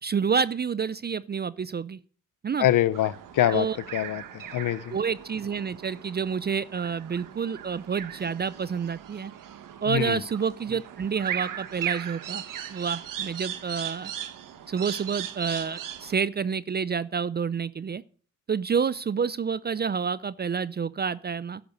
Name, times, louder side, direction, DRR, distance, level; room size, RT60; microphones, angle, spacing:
voice 1, 0.0-2.0 2.4-2.7 3.5-3.8 4.9-9.3 9.8-12.4 12.7-14.1 14.7-18.0 18.5-21.6, right 6 dB, 30° right, 19 dB, 0.5 m, -28 dB
voice 2, 2.6-3.7 3.9-4.9 9.9-10.2, left 12 dB, 70° left, 16 dB, 0.8 m, -24 dB
sound 1, 2.9-16.2, right 10 dB, 70° right, 1.5 m, -38 dB
11.5 x 7.9 x 8.1 m, 0.43 s
cardioid pair, 70°, 33 cm